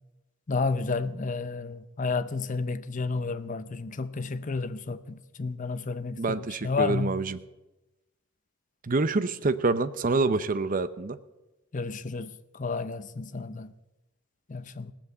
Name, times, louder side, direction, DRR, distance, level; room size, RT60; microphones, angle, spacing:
voice 1, 0.5-7.1 11.7-13.7 14.5-14.9, left 4 dB, 40° left, 0.6 m, -31 dB
voice 2, 6.2-7.4 8.8-11.2, right 3 dB, 40° right, 0.6 m, -26 dB
17.0 x 7.3 x 8.0 m
head